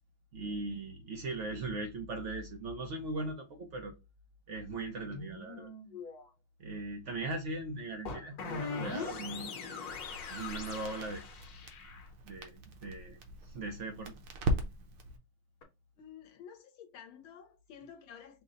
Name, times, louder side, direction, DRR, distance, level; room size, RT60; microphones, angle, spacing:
voice 1, 0.3-3.9 4.5-5.7 6.6-9.5 10.3-11.2 12.3-13.2 13.4-14.2, right 2 dB, 85° right, 0.6 m, -39 dB
sound 1, 3.2-3.3 5.0-6.3 8.0-12.1 15.6-15.7, left 5 dB, 60° left, 1.2 m, -41 dB
Crackle, 9.9-15.2, right 1 dB, 70° right, 1.4 m, -39 dB
voice 2, 16.0-18.4, left 8 dB, 85° left, 1.4 m, -51 dB
5.4 x 2.1 x 3.8 m
omnidirectional pair, 2.2 m